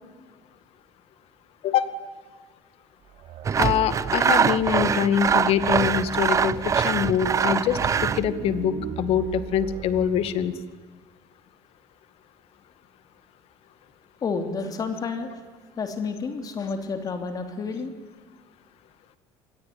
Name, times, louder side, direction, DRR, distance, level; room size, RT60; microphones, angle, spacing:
sound 1, 3.0-4.5 4.9-5.0 5.2-6.8 7.4-10.5, right 7 dB, 60° right, 3.2 m, -39 dB
Sawing, 3.4-8.3, right 7 dB, 30° right, 0.7 m, -23 dB
voice 1, 3.6-7.8 8.1-10.5, left 9 dB, 60° left, 12 dB, 2.1 m, -24 dB
voice 2, 14.2-15.3 15.8-17.9, left 4 dB, 35° left, 6 dB, 3.2 m, -30 dB
26.5 x 21.0 x 9.5 m, 1.4 s
cardioid pair, 130°, 11 cm